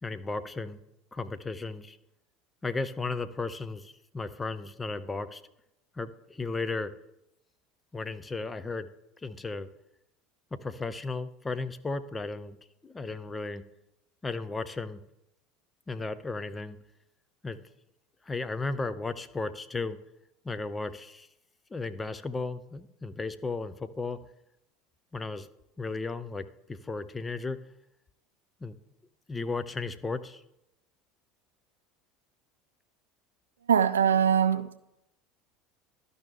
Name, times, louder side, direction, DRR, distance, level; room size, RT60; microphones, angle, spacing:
voice 1, 0.0-0.8 1.1-2.0 2.6-5.4 6.0-6.9 7.9-8.9 9.2-9.7 10.5-12.6 12.8-13.6 14.2-15.0 15.9-16.8 17.4-17.6 18.3-20.0 20.4-21.3 21.7-24.2 25.1-25.5 25.8-27.6 28.6-28.8 29.3-30.4, left 3 dB, 15° left, 0.5 m, -35 dB
voice 2, 33.7-34.8, right 8 dB, 75° right, 0.3 m, -22 dB
12.0 x 5.4 x 3.5 m
figure-of-eight pair, 70°, 0 cm